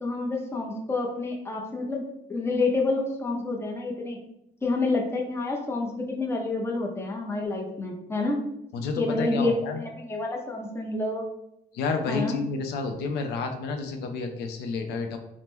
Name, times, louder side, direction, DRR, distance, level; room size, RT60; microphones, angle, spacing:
voice 1, 0.0-2.0 2.3-4.2 4.6-8.4 9.0-11.2 12.1-12.4, left 3 dB, 15° left, 0 dB, 0.6 m, -28 dB
voice 2, 8.7-9.8 11.7-15.2, left 4 dB, 75° left, 5 dB, 0.4 m, -30 dB
2.9 x 2.0 x 3.5 m, 0.82 s
cardioid pair, 110°, 17 cm